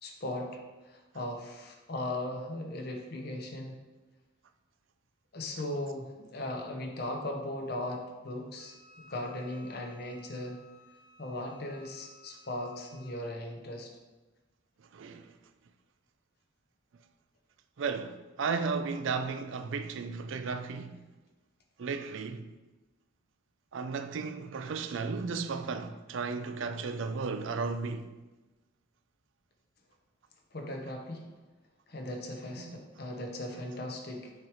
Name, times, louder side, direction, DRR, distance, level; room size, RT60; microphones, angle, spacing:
voice 1, 0.0-3.8 5.3-10.6 11.2-13.9 30.5-31.3 31.9-34.3, left 1 dB, 50° left, 0.8 m, -38 dB
Wind instrument woodwind instrument, 8.6-13.2, left 4 dB, 75° left, 1.5 m, -58 dB
voice 2, 14.8-15.3 17.8-21.0 21.8-22.5 23.7-28.1 32.6-32.8 33.5-33.6, right 4 dB, 70° right, 0.4 m, -34 dB
6.4 x 3.0 x 4.9 m
head